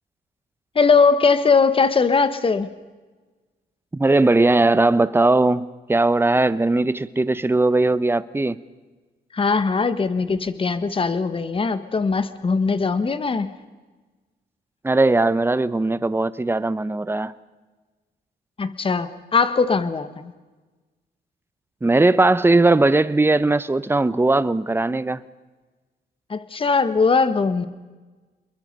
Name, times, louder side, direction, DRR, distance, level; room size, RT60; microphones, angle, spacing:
voice 1, 0.7-2.7 9.3-13.5 18.6-20.3 26.3-27.7, left 4 dB, 30° left, 1.4 m, -20 dB
voice 2, 3.9-8.6 14.8-17.3 21.8-25.2, right 2 dB, 15° right, 0.9 m, -19 dB
28.0 x 22.0 x 5.5 m
cardioid pair, 105°, 17 cm